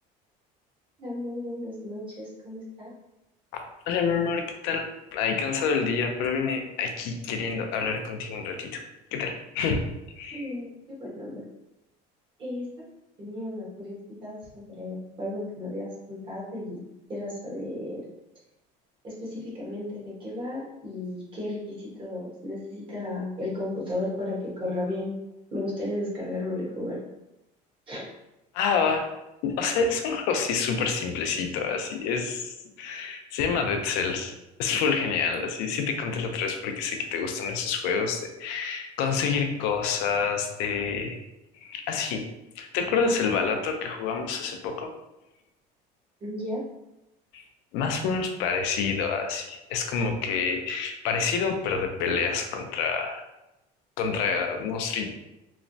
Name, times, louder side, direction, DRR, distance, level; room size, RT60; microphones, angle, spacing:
voice 1, 1.0-2.9 10.3-11.4 12.4-12.7 13.2-16.8 17.1-18.0 19.0-25.1 25.5-27.0 27.9-28.0 46.2-46.6, left 1 dB, 30° right, -5 dB, 1.1 m, -34 dB
voice 2, 3.5-8.8 9.1-9.8 10.2-10.5 28.5-29.0 29.4-34.3 34.6-41.2 41.6-42.2 42.6-44.9 47.3-47.4 47.7-53.2 54.0-55.1, left 5 dB, 80° left, 5 dB, 0.4 m, -28 dB
3.1 x 2.0 x 2.6 m, 0.93 s
cardioid pair, 145°, 18 cm